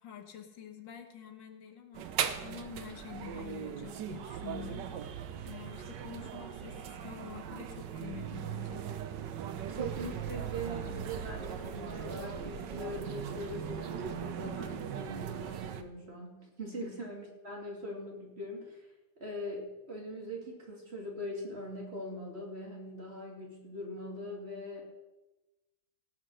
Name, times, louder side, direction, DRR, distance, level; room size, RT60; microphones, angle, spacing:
voice 1, 0.0-5.2 5.4-8.9 16.8-16.9, left 9 dB, 80° left, 6 dB, 1.9 m, -47 dB
sound 1, 1.9-15.8, right 9 dB, 75° right, 1.4 m, -39 dB
voice 2, 9.7-18.9 19.2-24.8, equal, 35° right, -1 dB, 2.8 m, -41 dB
sound 2, 9.7-14.1, right 3 dB, 55° right, 1.6 m, -49 dB
17.5 x 6.0 x 6.4 m, 1.0 s
omnidirectional pair, 2.0 m